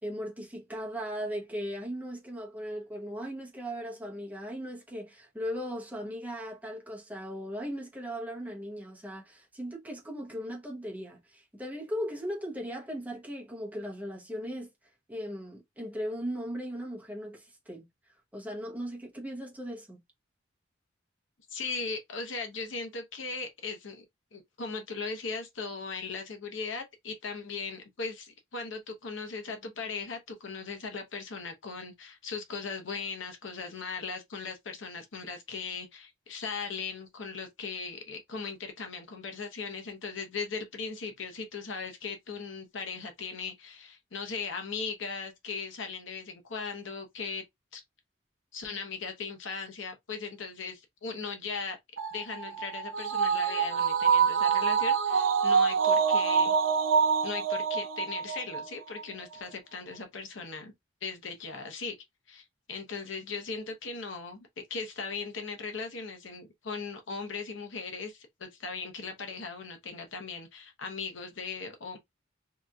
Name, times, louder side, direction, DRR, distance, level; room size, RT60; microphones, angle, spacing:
voice 1, 0.0-14.7 15.1-20.0, equal, 10° right, 0.8 m, -38 dB
voice 2, 21.5-24.0 24.3-47.4 47.7-47.8 48.5-51.8 52.1-56.5 57.2-60.7 61.0-61.9 62.3-64.4 64.7-72.0, left 4 dB, 70° left, 0.8 m, -38 dB
sound 1, 52.0-58.6 59.0-59.1, right 6 dB, 80° right, 0.5 m, -26 dB
2.8 x 2.5 x 2.2 m
head